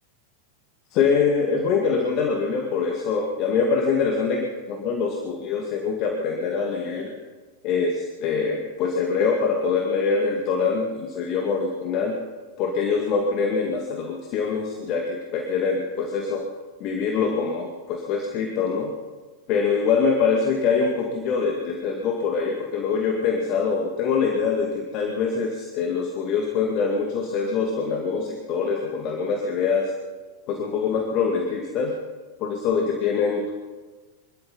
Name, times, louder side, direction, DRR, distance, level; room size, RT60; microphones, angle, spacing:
voice 1, 0.9-7.1 7.6-12.2 12.6-16.4 16.8-18.9 19.5-29.9 30.5-31.9 32.4-33.5, left 5 dB, 40° left, 1 dB, 2.1 m, -24 dB
26.5 x 13.0 x 4.1 m, 1.3 s
figure-of-eight pair, 90°, 0 cm